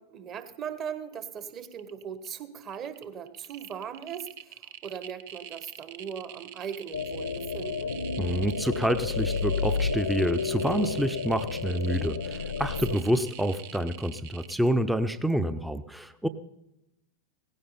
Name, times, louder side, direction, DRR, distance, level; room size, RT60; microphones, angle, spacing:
voice 1, 0.0-4.6 4.8-7.9 12.9-13.0, right 7 dB, 30° right, 12 dB, 1.4 m, -39 dB
sound 1, 1.1-1.4 1.6-2.3 2.6-14.5, right 10 dB, 50° right, 0.9 m, -45 dB
sound 2, 6.9-13.0, left 5 dB, 75° left, 0.9 m, -31 dB
voice 2, 8.2-16.3, right 1 dB, 5° right, 11 dB, 0.7 m, -28 dB
17.0 x 15.5 x 4.2 m, 0.87 s
figure-of-eight pair, 90°, 0 cm